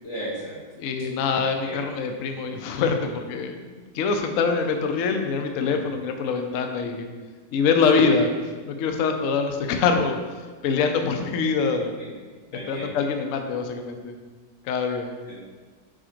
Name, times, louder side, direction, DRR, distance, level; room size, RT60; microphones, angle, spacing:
voice 1, 0.0-0.9 1.6-1.8 5.6-5.8 7.9-8.2 12.0-12.1 12.5-12.9 15.3-15.4, right 1 dB, 60° left, -8 dB, 2.7 m, -35 dB
voice 2, 0.8-7.0 7.5-8.3 8.7-10.2 10.6-11.9 12.7-14.1 14.6-15.1, left 5 dB, 75° left, 5 dB, 0.7 m, -24 dB
4.9 x 4.8 x 4.4 m, 1.4 s
omnidirectional pair, 1.9 m